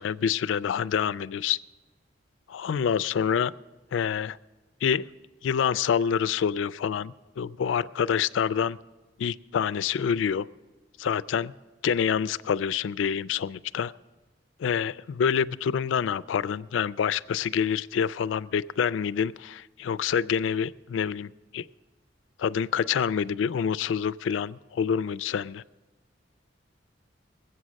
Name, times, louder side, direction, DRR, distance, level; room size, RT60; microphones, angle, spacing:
voice 1, 0.0-1.6 2.5-3.5 3.9-4.4 4.8-5.1 5.4-8.8 9.2-10.5 11.0-11.5 11.8-13.9 14.6-21.6 22.4-25.6, left 7 dB, 85° left, 16 dB, 0.3 m, -27 dB
20.5 x 8.0 x 6.3 m, 1.2 s
head